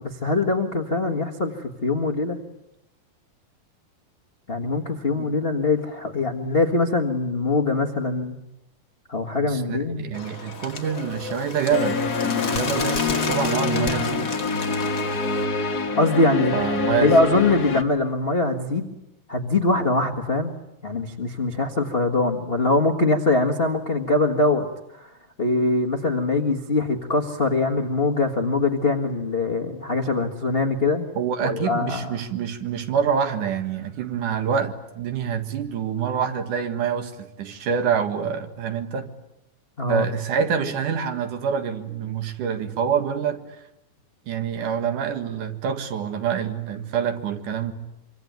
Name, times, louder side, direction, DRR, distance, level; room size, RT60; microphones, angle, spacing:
voice 1, 0.0-2.4 4.5-8.3 9.1-10.1 15.9-16.5 17.0-18.9 19.3-20.6 20.8-24.7 25.0-25.1 25.4-31.1 31.4-32.2 39.8-40.0, left 3 dB, 75° left, 0.5 m, -22 dB
voice 2, 9.4-14.4 16.5-17.2 31.2-39.1 39.9-43.4 44.3-47.7, right 7 dB, 65° right, 3.1 m, -26 dB
Bird, 10.1-15.4, left 4 dB, 30° left, 2.0 m, -32 dB
sound 1, 11.7-17.8, left 4 dB, 45° left, 1.3 m, -25 dB
25.5 x 24.5 x 9.3 m
omnidirectional pair, 4.1 m